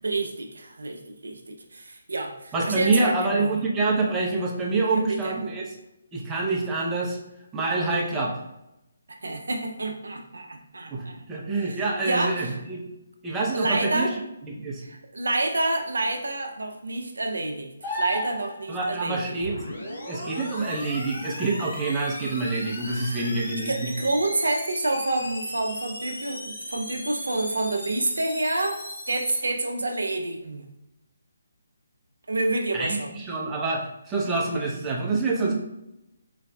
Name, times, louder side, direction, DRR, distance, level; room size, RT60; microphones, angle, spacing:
voice 1, 0.0-3.5 4.9-5.3 9.1-11.2 11.6-12.5 13.5-14.1 14.8-19.3 22.9-23.3 23.6-28.8 29.1-30.6 32.3-33.1, right 2 dB, 80° right, 3 dB, 0.5 m, -28 dB
voice 2, 2.5-5.6 6.1-7.2 7.5-8.4 10.9-12.8 13.2-14.1 14.5-14.8 18.7-19.5 20.1-23.9 32.7-35.5, right 3 dB, 15° right, -4 dB, 0.5 m, -26 dB
sound 1, 17.8-18.8 22.3-22.4, left 1 dB, 25° left, 0.9 m, -31 dB
sound 2, 19.4-29.4, left 1 dB, 70° left, 0.8 m, -37 dB
3.9 x 2.4 x 2.2 m, 0.87 s
figure-of-eight pair, 150°, 0 cm